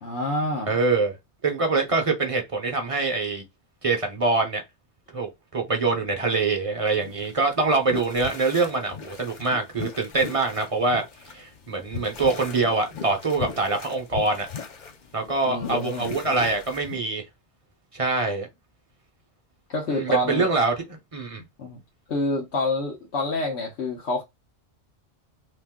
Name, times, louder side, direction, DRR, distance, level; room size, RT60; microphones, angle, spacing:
voice 1, 0.0-0.8 15.4-16.1 19.7-20.5 21.6-21.8 22.1-24.2, left 2 dB, 75° left, 1.2 m, -27 dB
voice 2, 0.7-1.1 1.4-3.4 3.8-4.6 5.1-14.5 15.1-17.2 17.9-18.5 19.9-21.4, right 3 dB, 35° right, 0.8 m, -24 dB
sound 1, 7.0-17.0, left 6 dB, 50° left, 0.7 m, -38 dB
3.0 x 2.6 x 3.5 m
omnidirectional pair, 1.1 m